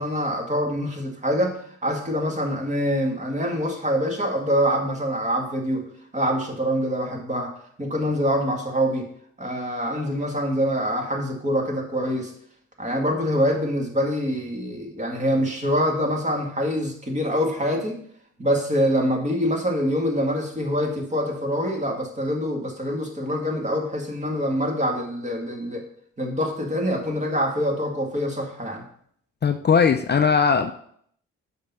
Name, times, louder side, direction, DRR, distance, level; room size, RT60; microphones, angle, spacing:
voice 1, 0.0-9.1 9.4-12.3 12.8-18.0 18.4-25.8 26.2-28.9, equal, 25° right, 1 dB, 2.0 m, -25 dB
voice 2, 29.4-30.7, left 6 dB, 35° left, 6 dB, 0.6 m, -19 dB
7.1 x 5.9 x 5.5 m, 0.63 s
cardioid pair, 110°, 30 cm